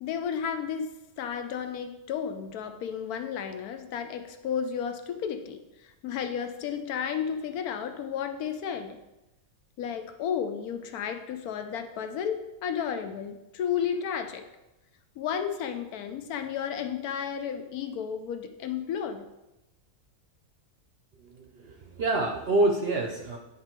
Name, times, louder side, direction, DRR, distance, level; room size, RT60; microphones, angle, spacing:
voice 1, 0.0-9.0 9.8-14.4 15.2-19.3, left 8 dB, 80° left, 8 dB, 1.1 m, -33 dB
voice 2, 21.2-23.4, right 2 dB, 55° right, 3 dB, 0.7 m, -27 dB
9.6 x 3.4 x 4.4 m, 0.97 s
omnidirectional pair, 1.6 m